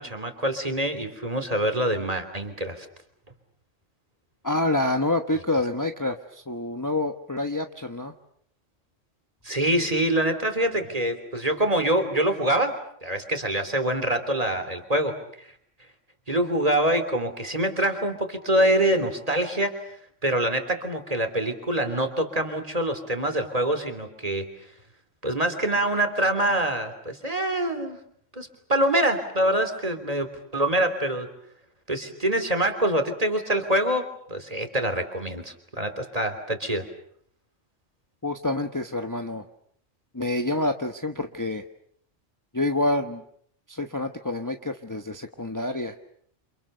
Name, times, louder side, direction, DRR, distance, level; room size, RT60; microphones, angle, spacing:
voice 1, 0.0-2.9 9.4-12.7 13.0-15.5 16.3-19.8 20.2-24.5 25.2-28.0 28.3-31.3 31.9-36.9, right 1 dB, 30° right, 7 dB, 3.4 m, -25 dB
voice 2, 4.4-8.1 38.2-39.5 40.1-41.6 42.5-43.2 43.7-45.9, left 2 dB, 15° left, 6 dB, 1.2 m, -27 dB
29.0 x 27.5 x 6.8 m, 0.66 s
omnidirectional pair, 1.3 m